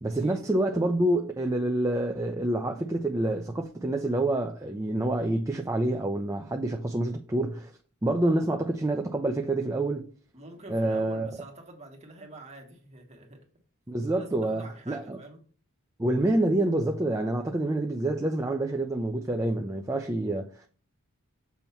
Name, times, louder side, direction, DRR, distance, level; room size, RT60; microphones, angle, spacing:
voice 1, 0.0-7.7 8.0-10.0 10.7-11.3 13.9-15.2 16.0-20.7, right 1 dB, 15° right, 0.5 m, -27 dB
voice 2, 10.3-13.4 14.1-15.4, right 2 dB, 30° right, 1.7 m, -46 dB
7.0 x 3.0 x 5.6 m
head